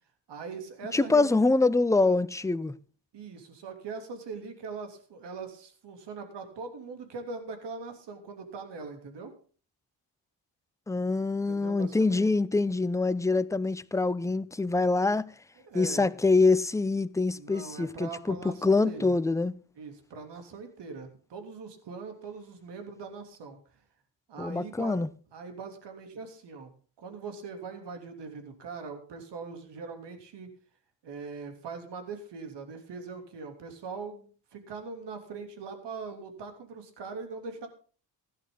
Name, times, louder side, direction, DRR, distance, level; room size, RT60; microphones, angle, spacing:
voice 1, 0.3-1.3 3.1-9.3 11.5-12.2 15.6-16.1 17.3-19.1 19.8-23.6 24.3-25.0 25.3-26.7 27.0-30.5 31.0-37.7, right 4 dB, 70° right, 3.1 m, -41 dB
voice 2, 0.9-2.7 10.9-15.3 15.7-19.6 24.4-25.1, left 3 dB, 5° left, 0.6 m, -25 dB
15.5 x 11.0 x 3.9 m
cardioid pair, 80°, 43 cm